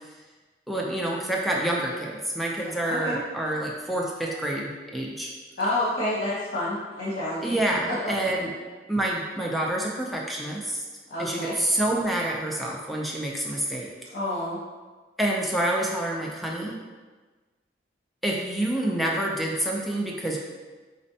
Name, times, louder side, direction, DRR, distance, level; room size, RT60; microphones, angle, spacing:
voice 1, 0.7-5.3 7.4-8.5 8.9-10.8 11.2-13.9 15.2-16.8 18.2-20.4, right 1 dB, ahead, -2 dB, 0.4 m, -27 dB
voice 2, 2.9-3.2 5.6-7.6 7.9-8.1 11.1-11.5 14.1-14.6, left 1 dB, 60° left, -9 dB, 0.9 m, -28 dB
4.2 x 4.1 x 2.7 m, 1.3 s
head